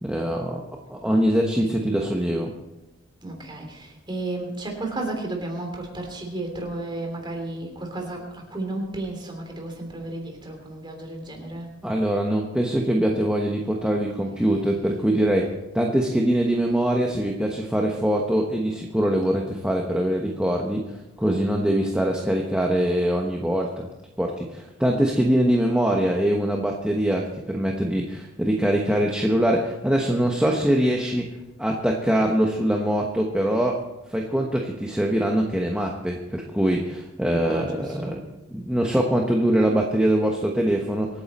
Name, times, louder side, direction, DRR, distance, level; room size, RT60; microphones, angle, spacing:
voice 1, 0.0-2.5 11.8-23.9 24.2-31.3 31.6-33.8 34.1-38.2 38.5-41.1, right 1 dB, 5° right, 0 dB, 1.0 m, -23 dB
voice 2, 3.2-11.7 37.4-38.1, right 2 dB, 20° right, 2 dB, 3.1 m, -33 dB
25.0 x 9.5 x 4.2 m, 0.99 s
head